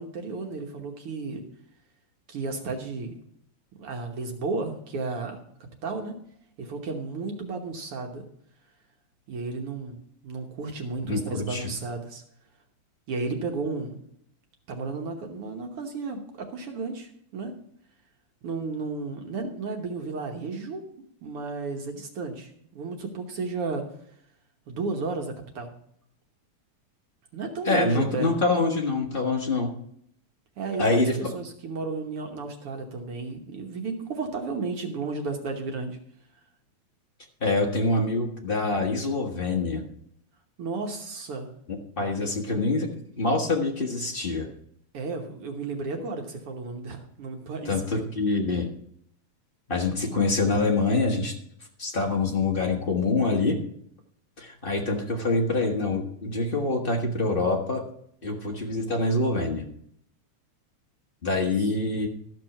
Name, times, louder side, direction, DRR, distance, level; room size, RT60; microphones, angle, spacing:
voice 1, 0.0-1.4 2.3-3.1 3.8-5.4 5.8-6.2 6.6-8.2 9.3-12.2 13.1-14.0 14.7-17.6 18.4-20.8 21.2-23.8 24.7-25.7 27.3-28.3 30.6-36.0 40.6-41.5 44.9-48.1 61.6-61.7, right 3 dB, 55° right, 3 dB, 1.9 m, -33 dB
voice 2, 11.1-11.7 27.6-29.7 30.8-31.2 37.4-39.8 41.7-44.5 47.6-48.7 49.7-51.3 51.8-53.6 54.4-57.8 58.2-59.6 61.2-62.1, left 3 dB, 85° left, 0 dB, 0.4 m, -25 dB
13.5 x 6.1 x 5.9 m, 0.68 s
omnidirectional pair, 3.4 m